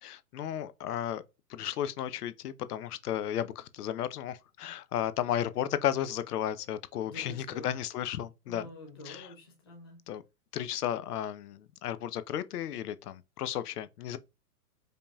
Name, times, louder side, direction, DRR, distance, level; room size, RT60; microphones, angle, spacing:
voice 1, 0.0-1.2 1.5-8.7 9.0-9.3 10.1-10.2 10.5-14.2, left 10 dB, 70° left, 0.6 m, -34 dB
voice 2, 7.0-7.7 8.5-10.0, left 1 dB, 20° left, 0.3 m, -47 dB
5.1 x 2.7 x 2.2 m
hypercardioid pair, 140°, 47 cm